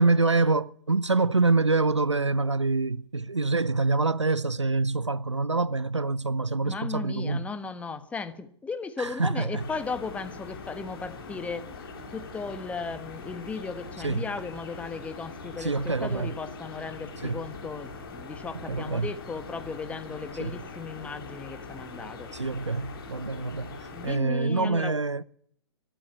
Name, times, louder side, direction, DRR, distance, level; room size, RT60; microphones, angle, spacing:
voice 1, 0.0-7.5 9.0-9.6 14.0-14.2 15.6-16.3 17.2-17.5 18.7-19.1 20.4-20.6 22.3-25.2, right 3 dB, 90° right, 0.7 m, -26 dB
voice 2, 6.6-11.7 12.1-22.3 23.9-24.9, left 4 dB, 10° left, 1.3 m, -36 dB
sound 1, 9.5-24.2, left 4 dB, 50° left, 5.8 m, -42 dB
24.0 x 11.5 x 9.6 m
figure-of-eight pair, 120°, 15 cm